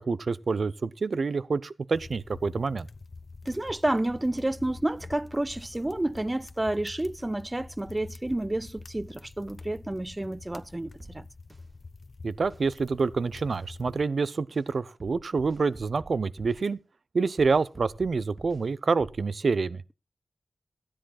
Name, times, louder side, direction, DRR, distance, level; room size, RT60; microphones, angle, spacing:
voice 1, 0.1-2.9 12.2-16.8 17.1-19.8, right 4 dB, 70° right, 0.6 m, -27 dB
sound 1, 1.9-14.0, left 3 dB, 60° left, 0.9 m, -46 dB
voice 2, 3.5-11.3, right 1 dB, 25° right, 0.5 m, -30 dB
sound 2, 11.0-11.6 12.5-12.6 13.5-13.6 14.5-14.6 15.0-16.7 17.4-18.7 19.0-19.3, right 3 dB, 45° right, 1.0 m, -49 dB
13.0 x 10.0 x 4.2 m
cardioid pair, 40°, 0 cm